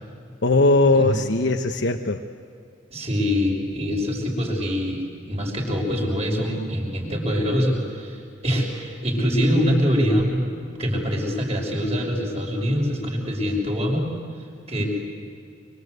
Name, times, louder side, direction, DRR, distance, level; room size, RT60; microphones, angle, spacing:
voice 1, 0.4-2.2, left 2 dB, 75° left, 5 dB, 1.1 m, -19 dB
voice 2, 2.9-10.4 10.8-14.1 14.7-14.9, equal, 35° right, 0 dB, 6.0 m, -24 dB
25.5 x 24.5 x 8.2 m, 2.5 s
head